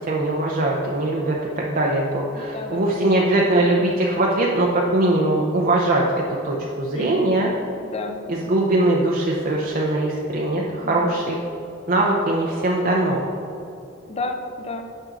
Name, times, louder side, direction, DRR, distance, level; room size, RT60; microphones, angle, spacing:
voice 1, 0.1-6.0 6.4-7.5 8.3-11.4 11.9-13.3, right 2 dB, 45° right, -3 dB, 0.7 m, -21 dB
voice 2, 2.3-3.0 6.9-7.3 7.8-8.2 10.8-11.2 14.1-14.9, left 2 dB, 30° left, 5 dB, 0.6 m, -32 dB
9.0 x 6.3 x 3.8 m, 2.8 s
head